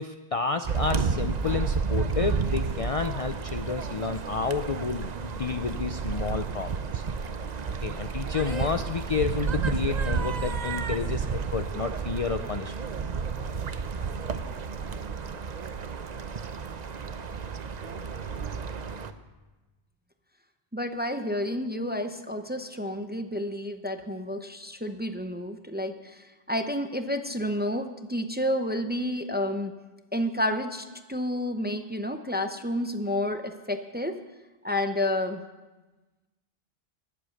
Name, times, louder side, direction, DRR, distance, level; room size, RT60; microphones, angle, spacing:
voice 1, 0.0-7.0 7.8-12.7, left 5 dB, 45° left, 8 dB, 0.5 m, -30 dB
sound 1, 0.6-19.1, right 5 dB, 45° right, 0.7 m, -31 dB
voice 2, 20.7-29.7 30.1-34.1 34.6-35.4, left 1 dB, 10° right, 7 dB, 0.6 m, -30 dB
20.5 x 7.8 x 6.5 m, 1.2 s
omnidirectional pair, 1.0 m